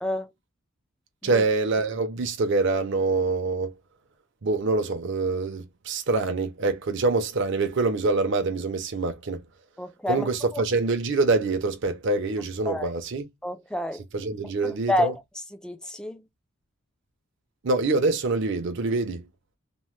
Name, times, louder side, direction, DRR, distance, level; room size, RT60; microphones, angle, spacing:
voice 1, 0.0-0.3 1.2-1.4 9.8-10.6 12.7-13.0 13.4-14.0 14.6-16.2, left 1 dB, 5° left, 0.3 m, -29 dB
voice 2, 1.2-3.7 4.4-9.4 10.1-13.2 14.1-15.1 17.6-19.2, right 3 dB, 60° right, 0.6 m, -25 dB
2.9 x 2.1 x 3.0 m
head